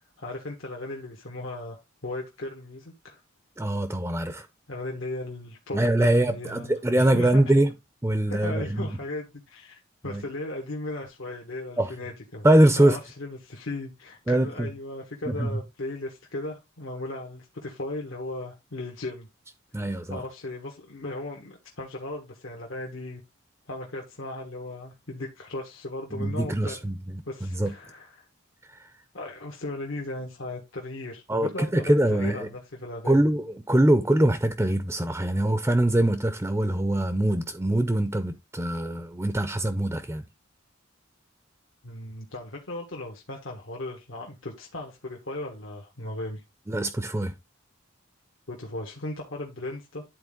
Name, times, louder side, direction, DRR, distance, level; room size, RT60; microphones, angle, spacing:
voice 1, 0.2-3.2 4.7-7.4 8.3-12.5 12.8-19.3 20.1-23.2 23.7-26.8 27.3-28.3 29.1-33.2 41.8-46.4 48.5-50.0, left 2 dB, 75° left, 1.5 m, -37 dB
voice 2, 3.6-4.5 5.7-7.7 8.0-9.0 10.1-10.2 11.8-11.9 12.4-13.0 14.3-14.7 15.3-15.6 19.7-20.2 26.1-27.0 27.4-27.7 28.7-28.9 31.3-32.5 33.0-40.2 46.7-47.3, right 1 dB, 10° right, 0.5 m, -23 dB
10.5 x 4.2 x 3.7 m
head